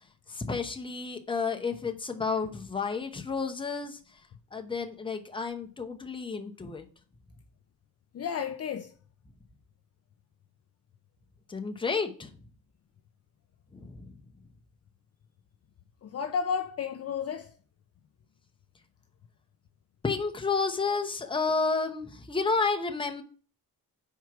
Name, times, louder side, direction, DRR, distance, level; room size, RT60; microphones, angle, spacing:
voice 1, 0.3-4.0 4.5-6.8 11.5-12.3 13.7-14.1 20.0-23.2, left 4 dB, 15° left, 0.8 m, -31 dB
voice 2, 8.1-8.9 16.0-17.5, left 6 dB, 45° left, 0.5 m, -32 dB
4.7 x 4.5 x 5.9 m
wide cardioid pair, 140°, 36 cm